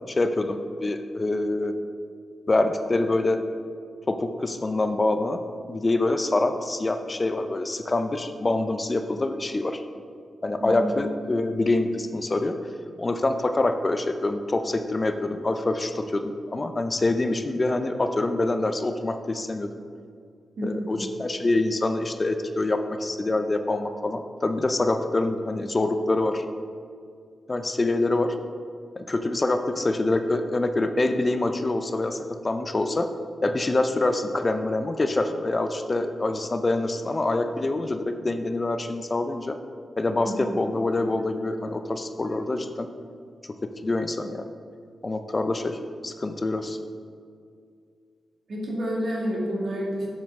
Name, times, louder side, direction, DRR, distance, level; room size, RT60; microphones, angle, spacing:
voice 1, 0.1-1.7 2.5-3.4 4.1-5.4 5.7-9.8 10.4-12.6 13.0-19.7 20.6-26.5 27.5-28.4 29.0-33.1 33.4-39.6 40.0-42.9 43.4-43.5 43.8-44.5 45.0-46.8, left 2 dB, 30° left, 8 dB, 0.4 m, -25 dB
voice 2, 10.6-11.0 20.6-20.9 40.2-40.5 48.5-50.1, equal, 70° right, -3 dB, 2.0 m, -29 dB
7.2 x 7.2 x 3.5 m, 2.3 s
wide cardioid pair, 110°, 0 cm